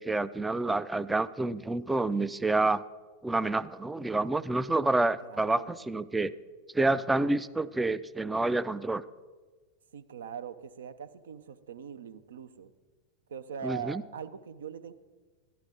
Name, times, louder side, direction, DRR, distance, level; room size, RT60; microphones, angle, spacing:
voice 1, 0.0-2.8 3.2-6.3 6.7-9.0 13.6-14.0, right 2 dB, 10° right, 15 dB, 0.3 m, -28 dB
voice 2, 5.2-5.8 9.9-12.7 13.3-14.9, right 7 dB, 65° right, 12 dB, 0.5 m, -41 dB
12.0 x 11.0 x 3.7 m, 1.4 s
figure-of-eight pair, 90°, 0 cm